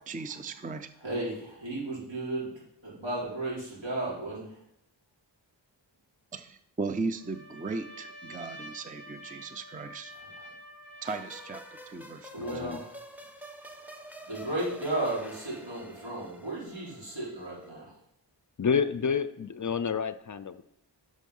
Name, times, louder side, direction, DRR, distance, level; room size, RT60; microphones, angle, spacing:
voice 1, 0.1-0.9 6.3-10.1 11.0-12.5, right 4 dB, 20° right, 10 dB, 0.5 m, -37 dB
voice 2, 1.0-4.6 10.2-10.5 12.3-12.9 14.3-17.9, right 2 dB, 80° right, -7 dB, 4.7 m, -34 dB
Trumpet, 7.2-12.0, equal, 40° right, 2.7 m, -48 dB
sound 1, 11.0-17.7, equal, 5° right, 1.1 m, -48 dB
voice 3, 12.4-12.8 18.6-20.6, left 6 dB, 45° left, 13 dB, 0.5 m, -29 dB
11.0 x 6.4 x 5.4 m, 0.79 s
wide cardioid pair, 110°, 45 cm